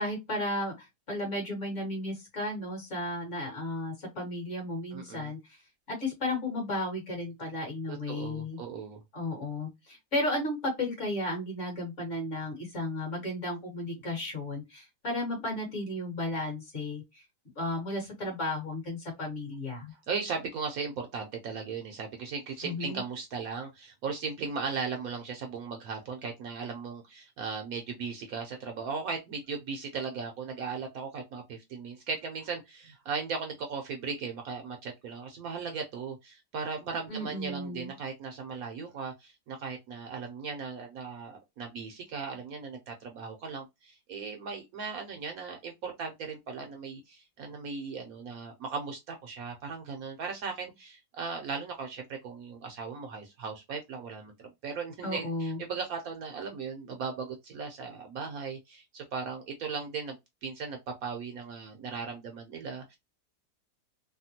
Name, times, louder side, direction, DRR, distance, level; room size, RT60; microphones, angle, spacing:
voice 1, 0.0-5.6 5.9-8.6 9.1-17.2 17.6-19.9 22.6-23.0 37.1-37.9 55.0-55.6, left 1 dB, 45° left, 1.8 m, -34 dB
voice 2, 4.9-5.3 7.9-9.0 20.1-60.2 60.4-63.0, right 5 dB, 65° right, 0.9 m, -37 dB
3.5 x 2.2 x 2.7 m
omnidirectional pair, 1.8 m